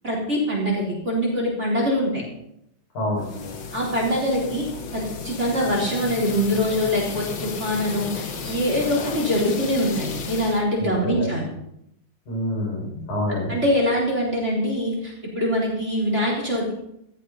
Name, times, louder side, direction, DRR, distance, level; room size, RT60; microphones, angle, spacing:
voice 1, 0.0-2.2 3.7-4.6 4.9-11.5 13.5-16.7, equal, 20° right, -2 dB, 4.2 m, -23 dB
sound 1, 3.2-10.6, left 5 dB, 50° left, 1.7 m, -33 dB
voice 2, 10.8-11.3 12.3-13.5, left 1 dB, 80° left, -3 dB, 7.4 m, -27 dB
16.5 x 13.5 x 4.2 m, 0.77 s
omnidirectional pair, 3.4 m